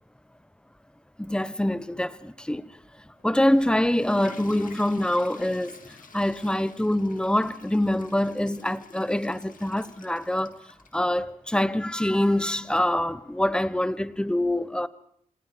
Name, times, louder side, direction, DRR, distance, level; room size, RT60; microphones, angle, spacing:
voice 1, 1.2-2.7 3.2-10.6 10.9-14.9, left 1 dB, 5° left, 1.0 m, -25 dB
Water / Toilet flush, 3.2-11.0, left 5 dB, 65° left, 2.3 m, -47 dB
29.5 x 26.5 x 5.1 m
wide cardioid pair, 95°, 15 cm